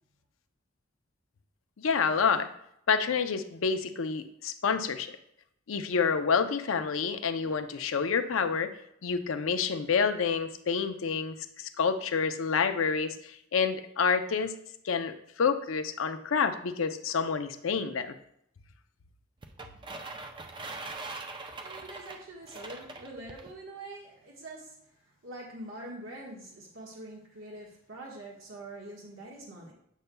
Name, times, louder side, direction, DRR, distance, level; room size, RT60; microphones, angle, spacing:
voice 1, 1.8-2.5 2.9-5.1 5.7-8.7 9.0-14.5 14.8-18.1, left 5 dB, 90° left, 9 dB, 0.5 m, -28 dB
sound 1, 19.4-23.5, right 3 dB, 25° right, 0.5 m, -42 dB
voice 2, 21.2-29.7, right 1 dB, 90° right, -3 dB, 1.4 m, -45 dB
8.1 x 6.6 x 2.2 m, 0.74 s
head